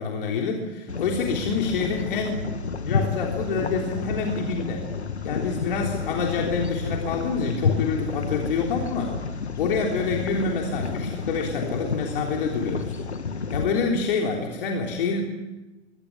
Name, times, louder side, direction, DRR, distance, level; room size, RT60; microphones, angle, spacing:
voice 1, 0.0-2.4 2.8-4.9 5.2-9.2 9.6-13.0 13.5-15.2, left 4 dB, 50° left, 0 dB, 3.7 m, -27 dB
sound 1, 0.9-13.6, left 5 dB, 75° left, 1.9 m, -30 dB
22.5 x 18.0 x 9.9 m, 1.1 s
figure-of-eight pair, 105°, 33 cm